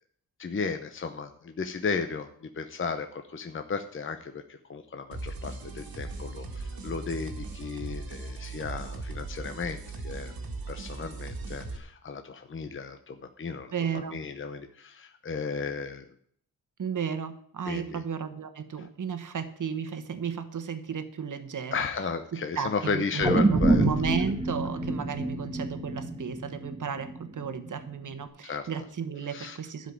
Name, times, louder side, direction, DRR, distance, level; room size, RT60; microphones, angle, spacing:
voice 1, 0.4-2.3 2.6-10.3 10.7-16.0 17.7-18.0 21.7-23.8 28.4-28.7 29.3-29.6, left 5 dB, 35° left, 7 dB, 0.8 m, -34 dB
sound 1, 5.1-11.8, right 3 dB, 75° right, 1.9 m, -38 dB
voice 2, 13.7-14.2 16.8-21.9 22.3-29.9, right 7 dB, 55° right, 10 dB, 1.3 m, -34 dB
sound 2, 23.2-27.7 28.1-28.2, right 2 dB, 15° right, 1.4 m, -26 dB
12.0 x 5.1 x 8.7 m, 0.62 s
wide cardioid pair, 115°, 36 cm